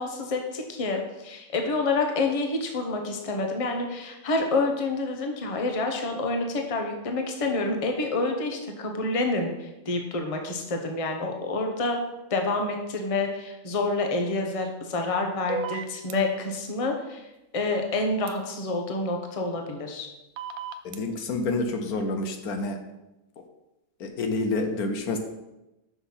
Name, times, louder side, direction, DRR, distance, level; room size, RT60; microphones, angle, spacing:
voice 1, 0.0-12.0 12.3-20.1, left 3 dB, 25° left, 3 dB, 0.9 m, -28 dB
sound 1, 15.5-16.1 18.3-18.4 20.4-21.0, right 6 dB, 75° right, 1.1 m, -33 dB
voice 2, 20.8-22.8 24.0-25.2, left 2 dB, 80° left, 5 dB, 1.4 m, -28 dB
5.9 x 5.9 x 5.7 m, 0.96 s
omnidirectional pair, 1.6 m